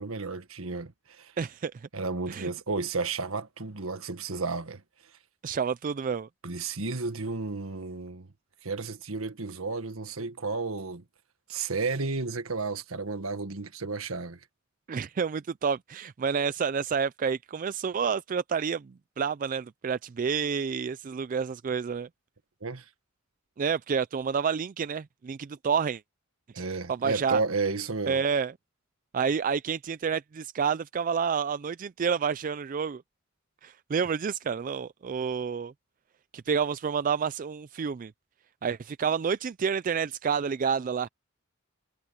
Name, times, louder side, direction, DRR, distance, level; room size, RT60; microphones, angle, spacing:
voice 1, 0.0-1.3 1.9-4.8 6.4-8.3 8.6-11.0 11.5-14.4 22.6-22.8 26.5-28.2, right 3 dB, 80° right, 1.6 m, -32 dB
voice 2, 1.4-1.9 2.3-2.5 5.4-6.3 14.9-22.1 23.6-26.0 26.6-27.4 28.1-28.5 29.1-33.0 33.6-35.7 36.3-38.1 38.6-41.1, right 6 dB, 40° right, 0.3 m, -29 dB
head